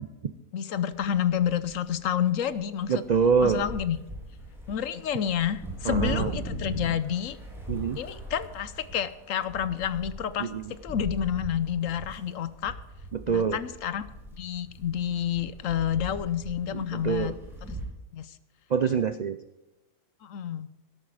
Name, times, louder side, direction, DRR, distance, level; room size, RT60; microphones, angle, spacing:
voice 1, 0.5-3.0 3.4-4.0 4.7-7.4 8.0-10.5 10.8-12.8 13.3-14.1 14.4-17.3 18.1-18.4 20.2-20.7, left 9 dB, 70° left, 14 dB, 1.1 m, -29 dB
sound 1, 0.9-2.2 2.5-17.8, right 1 dB, ahead, 3.8 m, -40 dB
voice 2, 2.9-3.6 5.8-6.3 7.7-8.0 10.4-10.6 13.1-13.6 16.7-17.4 18.7-19.4, right 6 dB, 65° right, 11 dB, 0.4 m, -25 dB
12.5 x 12.0 x 4.8 m, 1.0 s
omnidirectional pair, 1.5 m